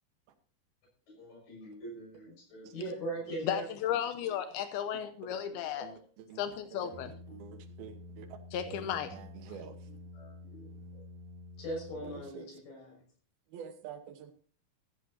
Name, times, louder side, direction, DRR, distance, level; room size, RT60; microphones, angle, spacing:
voice 1, 1.1-3.7 5.5-6.0 10.1-11.0 11.6-13.0, right 1 dB, 60° left, 7.6 m, -41 dB
voice 2, 3.4-5.9 6.4-7.1 8.5-9.1, left 10 dB, 80° left, 2.7 m, -34 dB
voice 3, 4.9-5.4 5.8-9.9 11.9-12.5 13.5-14.3, right 8 dB, 80° right, 3.0 m, -48 dB
sound 1, 6.9-12.3, left 1 dB, 50° right, 4.1 m, -49 dB
15.0 x 14.0 x 2.8 m
omnidirectional pair, 4.4 m